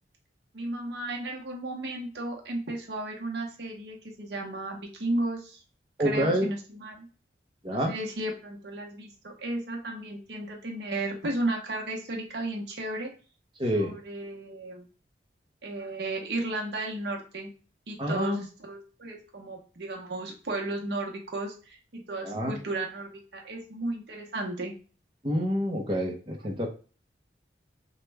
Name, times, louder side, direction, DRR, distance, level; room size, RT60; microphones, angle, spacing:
voice 1, 0.5-5.6 6.0-7.1 7.7-13.1 13.7-14.8 15.6-17.5 17.9-24.7, right 2 dB, 70° right, 0 dB, 0.8 m, -34 dB
voice 2, 6.0-6.5 7.6-7.9 13.6-13.9 18.0-18.4 22.2-22.5 25.2-26.7, equal, 25° right, 0 dB, 0.7 m, -27 dB
3.1 x 2.2 x 3.3 m, 0.37 s
head